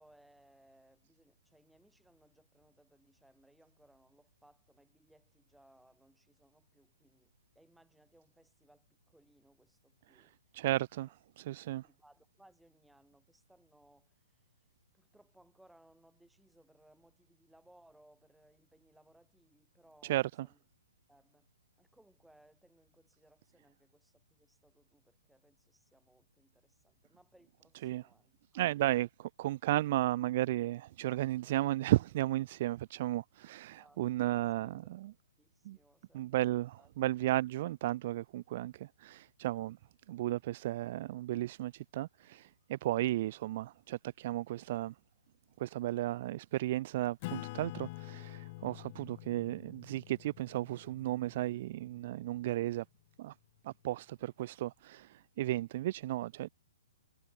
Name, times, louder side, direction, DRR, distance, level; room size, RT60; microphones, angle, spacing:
voice 1, 0.0-10.4 10.9-11.1 11.8-14.4 14.9-20.6 21.1-21.5 21.8-29.0 33.7-34.4 35.4-36.9, right 1 dB, ahead, 7.4 m, -66 dB
voice 2, 10.5-11.9 20.0-20.5 27.8-28.0 28.5-29.1 29.4-35.1 35.7-35.8 36.1-39.8 40.1-44.9 45.6-52.8 53.2-53.3 53.6-56.5, right 15 dB, 45° right, 0.4 m, -34 dB
Acoustic guitar / Strum, 47.2-52.2, left 21 dB, 40° left, 0.7 m, -47 dB
hypercardioid pair, 145°, 0 cm